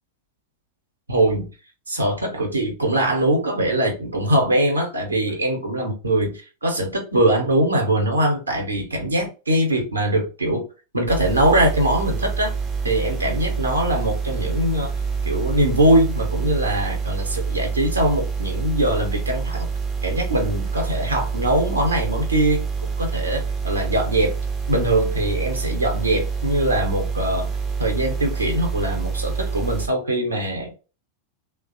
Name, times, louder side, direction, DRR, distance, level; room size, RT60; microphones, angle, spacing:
voice 1, 1.1-1.5 1.9-10.6 10.9-12.5 12.8-14.9 15.2-19.7 20.0-24.3 24.7-27.5 27.8-30.8, right 1 dB, 80° right, 1 dB, 0.8 m, -22 dB
sound 1, 11.1-29.9, right 5 dB, 20° right, 0.5 m, -27 dB
3.1 x 2.0 x 2.6 m, 0.32 s
figure-of-eight pair, 90°, 0 cm